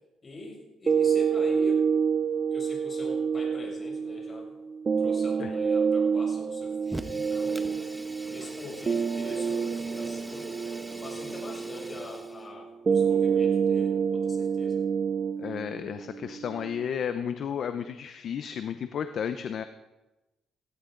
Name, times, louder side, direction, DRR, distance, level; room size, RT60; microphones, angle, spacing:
voice 1, 0.2-1.9 2.5-4.6 5.0-7.8 8.3-10.5 11.0-14.8, left 2 dB, 35° left, -1 dB, 7.2 m, -43 dB
sound 1, 0.9-16.9, right 6 dB, 40° right, 0.7 m, -28 dB
Fire, 6.8-12.5, right 1 dB, 10° right, 1.1 m, -42 dB
voice 2, 15.4-19.6, left 8 dB, 65° left, 9 dB, 0.8 m, -33 dB
18.5 x 15.5 x 3.9 m, 1.0 s
cardioid pair, 90°, 0 cm